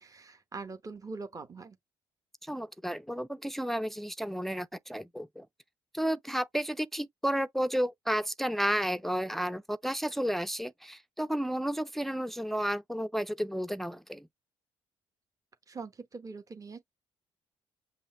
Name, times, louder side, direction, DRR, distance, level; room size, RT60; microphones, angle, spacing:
voice 1, 0.0-1.8 15.7-16.8, right 4 dB, 30° right, 1.0 m, -43 dB
voice 2, 2.4-5.5 5.9-14.3, equal, ahead, 0.4 m, -32 dB
5.5 x 2.1 x 4.4 m
supercardioid pair, 65°, 11 cm